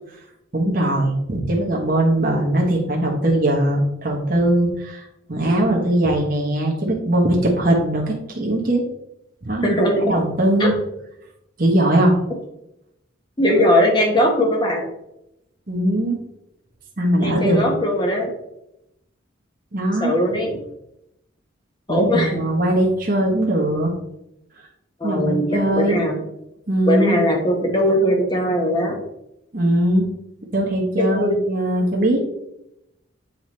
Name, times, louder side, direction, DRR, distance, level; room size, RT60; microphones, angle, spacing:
voice 1, 0.5-5.0 5.3-8.8 9.4-9.8 10.0-10.7 11.6-12.1 15.7-16.2 17.0-17.6 19.7-20.1 21.9-23.9 25.0-26.0 26.7-27.2 29.5-30.1 30.5-32.2, right 1 dB, 45° right, -2 dB, 1.2 m, -20 dB
voice 2, 9.6-10.1 10.6-10.7 13.4-14.9 17.2-18.3 20.0-20.6 21.9-22.4 25.0-25.4 25.7-26.2 26.9-29.0 31.0-31.4, equal, 20° left, 1 dB, 1.2 m, -19 dB
7.6 x 4.8 x 3.2 m, 0.83 s
head